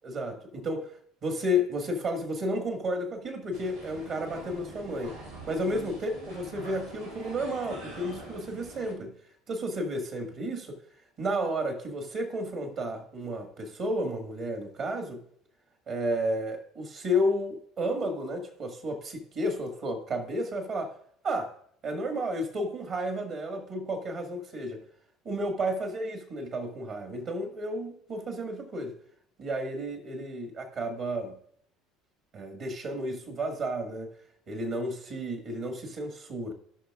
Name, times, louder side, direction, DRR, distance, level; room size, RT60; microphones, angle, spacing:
voice 1, 0.0-0.9 1.2-5.2 5.5-9.1 9.5-10.8 11.2-15.2 15.9-20.9 21.2-21.5 21.8-24.8 25.3-28.9 29.4-31.4 32.3-34.1 34.5-36.5, equal, 50° right, 4 dB, 1.8 m, -32 dB
sound 1, 3.5-8.9, right 1 dB, 85° right, 2.3 m, -44 dB
17.0 x 5.8 x 2.5 m, 0.64 s
figure-of-eight pair, 60°, 0 cm